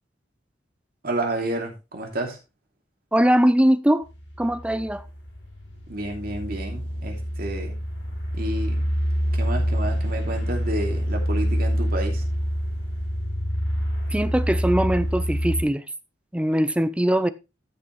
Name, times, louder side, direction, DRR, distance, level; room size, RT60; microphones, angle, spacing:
voice 1, 1.0-2.4 5.9-7.8 8.3-8.9 9.3-12.2, right 1 dB, 55° right, 2.9 m, -30 dB
voice 2, 3.1-4.1 4.4-5.0 14.1-15.8 16.3-17.3, right 1 dB, 5° right, 0.5 m, -21 dB
sound 1, 4.1-15.6, equal, 80° left, 6.9 m, -26 dB
14.0 x 6.0 x 3.2 m
head